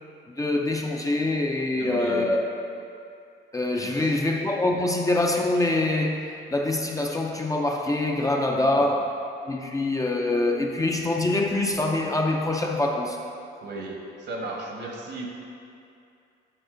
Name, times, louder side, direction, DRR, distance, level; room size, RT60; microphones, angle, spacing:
voice 1, 0.3-2.4 3.5-9.1 9.5-13.2, left 2 dB, 15° left, 1 dB, 0.5 m, -25 dB
voice 2, 1.7-2.4 3.8-4.1 8.6-8.8 13.6-15.3, right 2 dB, 60° right, 0 dB, 1.2 m, -36 dB
7.9 x 4.2 x 3.8 m, 2.5 s
cardioid pair, 90°, 20 cm